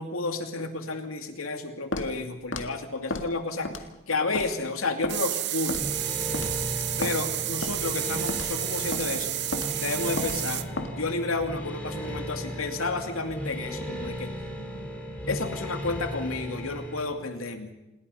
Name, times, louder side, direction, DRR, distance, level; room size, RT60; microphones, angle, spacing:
voice 1, 0.0-3.7 4.1-5.8 7.0-9.3 9.8-10.7 11.0-14.3 15.3-17.7, left 3 dB, 90° left, 6 dB, 2.7 m, -31 dB
Walk footsteps, 1.9-2.1 2.5-2.7 3.1-3.3 3.7-4.0 4.4-4.5 5.0-5.2 5.7-5.9 6.3-6.5 7.0-7.2 7.6-7.8 8.3-8.5 8.9-9.1 9.5-9.7 10.2-10.4 10.8-10.9, left 2 dB, 60° left, 2.0 m, -32 dB
sound 1, 5.1-10.6, right 14 dB, 55° right, 0.9 m, -31 dB
sound 2, 5.7-17.0, equal, 10° left, 5.4 m, -36 dB
27.5 x 20.5 x 5.6 m, 0.95 s
head